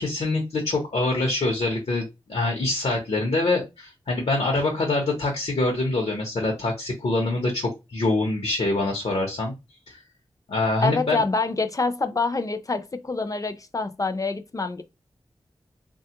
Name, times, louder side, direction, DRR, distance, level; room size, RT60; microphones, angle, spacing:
voice 1, 0.0-9.5 9.9-10.0 10.5-11.2, left 2 dB, 75° left, 0.8 m, -25 dB
voice 2, 10.8-14.8, left 3 dB, 35° left, 0.5 m, -26 dB
3.3 x 2.3 x 2.8 m
cardioid pair, 45°, 10 cm